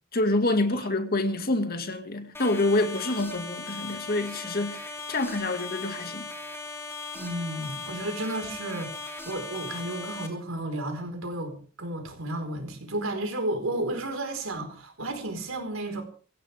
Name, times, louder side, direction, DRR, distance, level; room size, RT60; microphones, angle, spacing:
voice 1, 0.1-6.3, left 2 dB, 45° left, 2.1 m, -27 dB
sound 1, 2.3-10.3, left 3 dB, 10° left, 3.1 m, -38 dB
voice 2, 7.1-16.0, right 1 dB, 80° right, 4.7 m, -33 dB
23.0 x 16.0 x 3.6 m
head